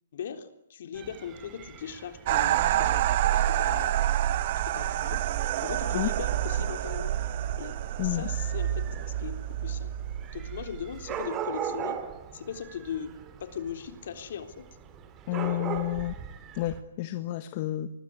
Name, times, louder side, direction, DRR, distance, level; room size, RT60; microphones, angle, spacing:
voice 1, 0.1-3.9 4.6-5.2 5.6-7.1 7.6-9.9 10.3-12.0 12.3-13.1 13.4-14.6 15.4-15.6, left 8 dB, 55° left, 7 dB, 3.8 m, -39 dB
Dog / Cat, 0.9-16.8, right 8 dB, 20° right, 3.3 m, -42 dB
sound 1, 2.3-11.2, right 12 dB, 45° right, 1.4 m, -28 dB
voice 2, 8.0-8.3 15.3-16.2 16.5-17.9, left 15 dB, 40° left, 10 dB, 1.6 m, -30 dB
25.0 x 21.0 x 9.8 m, 0.80 s
hypercardioid pair, 140°, 0 cm